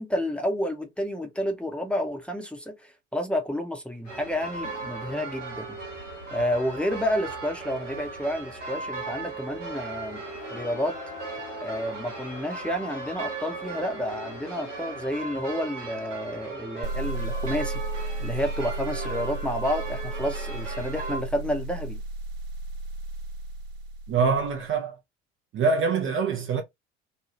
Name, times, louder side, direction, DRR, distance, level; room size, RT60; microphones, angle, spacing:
voice 1, 0.0-5.8 6.3-10.2 10.5-10.9 11.6-17.8 18.2-22.0, equal, 5° left, 0.8 m, -30 dB
sound 1, 4.0-15.1, left 6 dB, 50° left, 0.8 m, -46 dB
sound 2, 4.1-21.2, right 3 dB, 85° right, 0.8 m, -37 dB
sound 3, 16.8-24.6, right 2 dB, 55° right, 1.0 m, -34 dB
voice 2, 24.1-25.0 25.5-26.6, right 5 dB, 35° right, 0.6 m, -24 dB
2.7 x 2.3 x 3.0 m
figure-of-eight pair, 60°, 36 cm